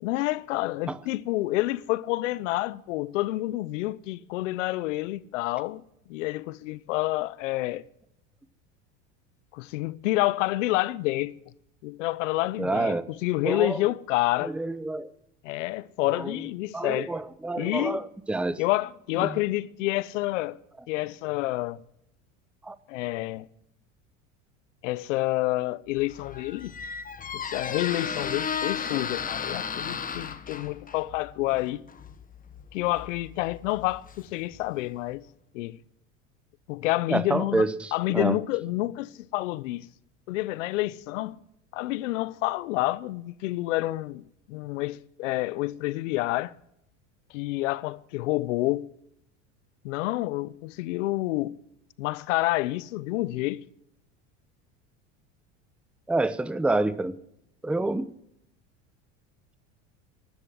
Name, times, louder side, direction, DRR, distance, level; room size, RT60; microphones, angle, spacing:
voice 1, 0.0-5.8 6.1-7.8 9.5-11.3 11.8-14.5 15.4-17.1 17.6-18.0 18.6-20.6 20.9-21.8 22.9-23.5 24.8-26.7 27.3-31.8 32.7-35.2 35.5-35.8 36.7-37.6 37.9-39.9 40.3-41.4 41.7-46.5 47.3-48.9 49.8-51.5 52.0-53.6, left 18 dB, 80° left, 0.9 m, -28 dB
voice 2, 12.6-13.0 13.4-13.8 14.4-15.1 16.1-16.3 16.7-18.6 19.2-19.3 22.7-22.8 37.1-38.4 56.1-57.2 57.6-58.1, right 2 dB, 5° right, 0.7 m, -27 dB
Squeak, 26.0-34.7, left 6 dB, 25° left, 1.3 m, -35 dB
15.0 x 12.0 x 7.5 m
supercardioid pair, 105°, 37 cm